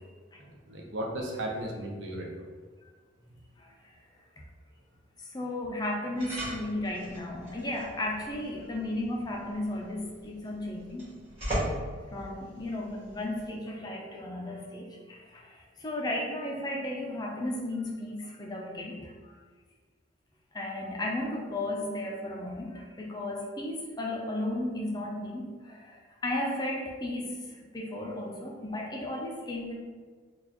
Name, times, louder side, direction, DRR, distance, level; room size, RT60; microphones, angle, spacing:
voice 1, 0.4-2.5, right 1 dB, 65° right, -1 dB, 0.6 m, -36 dB
voice 2, 3.6-4.0 5.2-11.1 12.1-19.3 20.5-26.0 26.2-29.7, left 1 dB, 20° left, -1 dB, 0.4 m, -34 dB
sound 1, 6.2-13.6, right 1 dB, 30° right, 1.5 m, -39 dB
3.9 x 2.3 x 2.9 m, 1.5 s
head